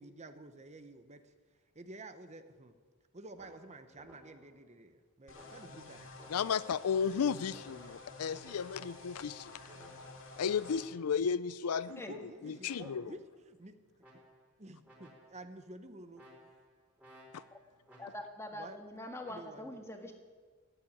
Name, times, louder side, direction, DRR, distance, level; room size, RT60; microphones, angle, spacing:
voice 1, 0.0-1.3 1.7-2.7 3.1-6.3 7.7-8.1 12.1-14.2 14.6-16.6 18.5-19.9, right 2 dB, 30° right, 9 dB, 0.9 m, -51 dB
sound 1, 3.3-4.7 5.3-6.8 7.5-9.0 9.7-11.3 11.8-13.3 14.0-14.6 14.8-15.6 16.1-18.5 19.2-19.6, equal, 5° right, 4.2 m, -59 dB
sound 2, 5.3-10.8, left 2 dB, 60° left, 2.6 m, -51 dB
voice 2, 6.3-9.6 10.4-12.0 12.4-13.1 17.3-17.4, left 6 dB, 80° left, 17 dB, 0.5 m, -34 dB
voice 3, 18.0-20.2, left 1 dB, 10° left, 4 dB, 1.8 m, -44 dB
15.5 x 8.9 x 10.0 m, 1.5 s
head